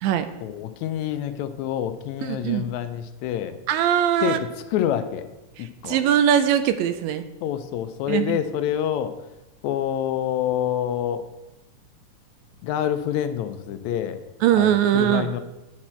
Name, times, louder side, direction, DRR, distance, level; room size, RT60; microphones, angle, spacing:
voice 1, 0.4-3.6 4.2-4.4 4.7-5.2 5.8-6.0 7.4-9.1 9.6-11.3 12.6-14.2 14.6-15.4, left 10 dB, 80° left, 11 dB, 1.8 m, -27 dB
voice 2, 2.2-2.7 3.7-4.4 5.6-7.2 8.1-8.4 14.4-15.3, right 10 dB, 80° right, 11 dB, 1.8 m, -21 dB
8.8 x 6.0 x 4.3 m, 1.0 s
omnidirectional pair, 3.3 m